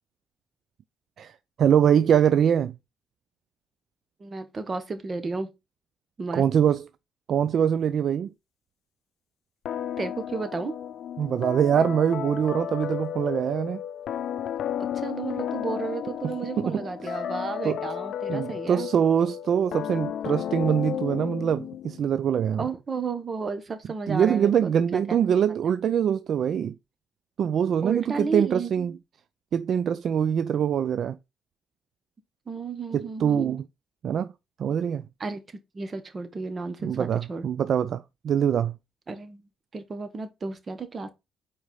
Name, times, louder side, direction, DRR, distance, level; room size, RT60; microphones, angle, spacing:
voice 1, 1.2-2.8 6.3-6.8 7.3-8.3 11.2-13.8 16.6-17.2 17.6-17.8 18.3-22.6 24.1-26.8 27.4-28.9 29.5-31.2 32.9-33.6 34.0-34.3 34.6-35.0 36.8-38.7, right 8 dB, 60° right, 0.4 m, -24 dB
voice 2, 4.2-5.5 6.2-6.4 10.0-10.8 14.8-18.9 22.6-25.0 25.7-25.8 27.8-29.0 32.5-33.6 35.2-35.4 35.7-37.5 39.1-41.1, right 4 dB, 35° right, 1.2 m, -33 dB
sound 1, 9.7-22.0, left 9 dB, 70° left, 0.5 m, -33 dB
4.8 x 4.3 x 5.3 m
cardioid pair, 90°, 0 cm